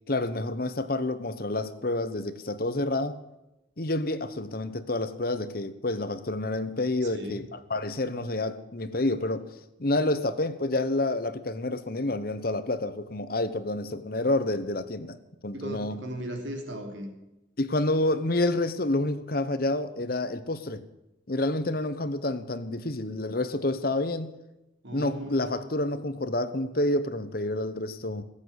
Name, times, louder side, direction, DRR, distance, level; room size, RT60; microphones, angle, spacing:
voice 1, 0.1-3.2 3.8-9.5 9.8-15.2 15.4-16.0 17.6-20.8 21.3-24.3 24.9-28.2, left 2 dB, 50° left, 12 dB, 1.0 m, -28 dB
voice 2, 7.0-7.4 15.5-17.1 24.8-25.6, right 1 dB, 75° right, 3 dB, 3.5 m, -37 dB
16.5 x 8.9 x 9.7 m, 0.95 s
head